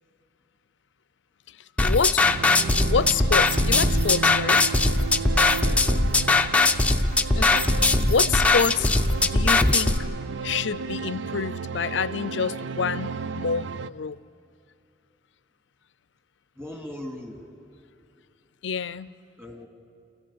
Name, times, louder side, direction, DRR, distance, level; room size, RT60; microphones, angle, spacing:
voice 1, 1.8-2.4 2.9-4.6 7.3-7.7 8.1-8.9 9.2-10.0 10.4-14.2 18.6-19.1, left 5 dB, 80° left, 17 dB, 0.5 m, -27 dB
sound 1, 1.8-10.0, left 3 dB, 5° left, 0.6 m, -20 dB
sound 2, 2.2-13.9, right 5 dB, 90° right, 0.5 m, -33 dB
voice 2, 5.6-6.1 16.6-17.5 19.4-19.7, left 1 dB, 15° right, 1 dB, 2.7 m, -39 dB
27.0 x 15.0 x 8.7 m, 2.4 s
head